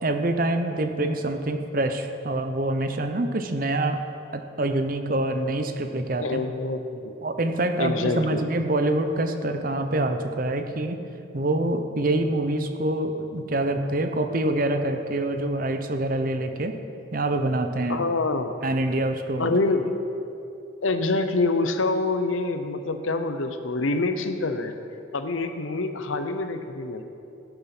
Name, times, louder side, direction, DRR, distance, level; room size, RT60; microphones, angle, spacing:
voice 1, 0.0-4.0 4.3-6.4 7.2-11.0 11.3-16.8 17.1-18.1 18.6-19.6, right 1 dB, 45° right, 7 dB, 0.7 m, -26 dB
voice 2, 6.2-7.1 7.8-8.4 17.9-18.5 19.4-20.0 20.8-24.7 25.1-27.0, left 3 dB, 80° left, 8 dB, 0.8 m, -26 dB
16.5 x 6.8 x 6.0 m, 2.7 s
head